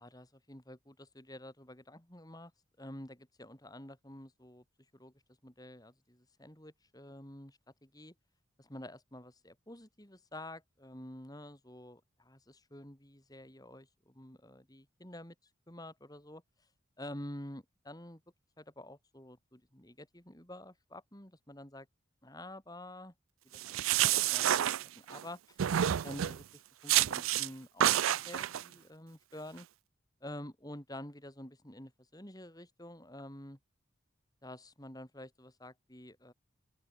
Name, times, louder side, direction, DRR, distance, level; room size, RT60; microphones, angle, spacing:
voice 1, 0.0-2.5 2.8-4.6 4.9-5.1 5.4-8.1 8.6-15.3 15.7-16.4 17.0-18.2 18.6-21.9 22.2-23.1 23.5-23.8 24.0-25.6 26.0-27.9 28.2-29.7 30.2-33.6 34.4-36.3, left 1 dB, 20° left, 4.9 m, -49 dB
sound 1, 23.5-25.2 25.6-26.4 26.9-27.5 27.8-28.6, right 11 dB, 90° right, 0.4 m, -29 dB
open air
head